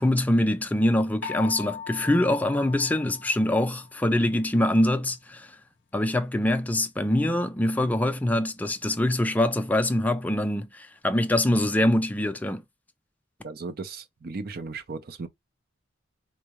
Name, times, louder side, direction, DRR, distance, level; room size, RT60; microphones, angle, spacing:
voice 1, 0.0-5.5 5.9-12.6, left 1 dB, 10° left, 0.4 m, -24 dB
sound 1, 1.2-4.0, left 7 dB, 65° left, 0.6 m, -39 dB
voice 2, 13.4-15.3, right 4 dB, 50° right, 0.5 m, -36 dB
4.6 x 2.0 x 2.9 m
head